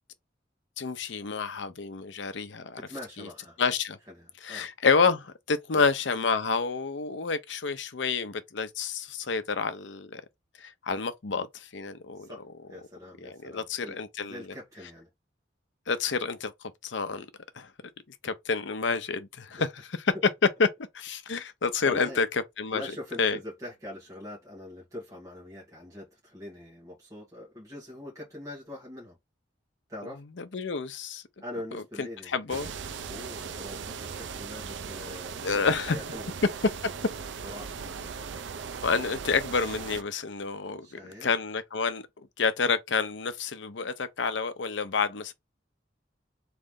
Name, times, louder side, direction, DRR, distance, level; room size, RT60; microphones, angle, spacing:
voice 1, 0.8-2.8 3.2-3.3 3.6-4.0 4.4-10.2 10.6-12.3 13.2-14.4 15.9-17.3 17.6-17.7 18.2-19.7 20.6-20.7 20.9-22.3 22.6-22.8 23.2-23.4 30.4-31.2 32.0-32.7 35.4-36.0 38.8-42.0 42.4-45.3, left 5 dB, 75° left, 0.7 m, -29 dB
voice 2, 2.9-3.6 4.1-4.7 5.7-5.9 12.2-15.1 19.6-19.7 21.8-22.2 22.7-29.2 29.9-30.2 31.4-32.6 33.1-35.6 35.9-36.3 37.4-37.8 40.8-41.3, left 1 dB, 20° right, 2.0 m, -43 dB
sound 1, 32.5-40.0, right 6 dB, 75° right, 0.6 m, -38 dB
3.8 x 3.2 x 3.6 m
head